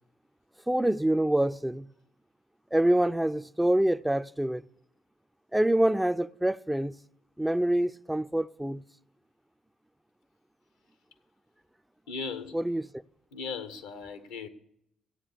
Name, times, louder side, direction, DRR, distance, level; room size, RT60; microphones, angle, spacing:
voice 1, 0.7-1.9 2.7-4.6 5.5-6.9 7.4-8.8 12.5-12.9, right 1 dB, 5° right, 0.4 m, -26 dB
voice 2, 12.1-12.6 13.3-14.5, left 5 dB, 80° left, 0.9 m, -37 dB
14.0 x 8.7 x 6.6 m
hypercardioid pair, 45°, 0 cm